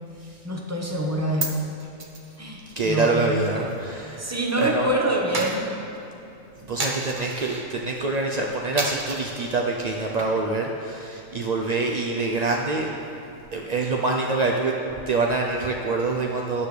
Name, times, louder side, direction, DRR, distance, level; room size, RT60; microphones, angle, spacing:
voice 1, 0.4-1.6 2.4-3.2 3.5-3.7 4.2-5.7, right 1 dB, 15° right, 0 dB, 1.0 m, -26 dB
Coin (dropping), 1.1-4.5 4.8-7.7 8.1-8.4 8.8-9.5 10.0-10.6 10.9-11.0 11.4-13.3, right 2 dB, 40° right, 1.1 m, -34 dB
voice 2, 2.7-4.9 6.6-12.9 13.5-14.7 15.1-16.7, right 3 dB, 55° right, 0 dB, 0.4 m, -26 dB
13.0 x 10.0 x 3.3 m, 2.7 s
omnidirectional pair, 1.4 m